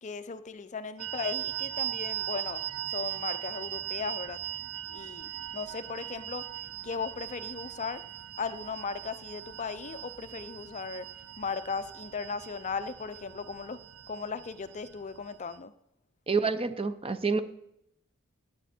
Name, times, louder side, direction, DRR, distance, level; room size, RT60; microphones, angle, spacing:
voice 1, 0.0-2.6 2.9-4.4 4.9-6.4 6.8-8.0 8.4-11.1 11.4-13.8 14.1-15.7, left 5 dB, 35° left, 12 dB, 0.5 m, -37 dB
sound 1, 1.0-15.6, right 12 dB, 85° right, 0.7 m, -39 dB
voice 2, 16.3-17.4, right 4 dB, 25° right, 12 dB, 0.6 m, -28 dB
17.5 x 9.0 x 4.3 m, 0.78 s
head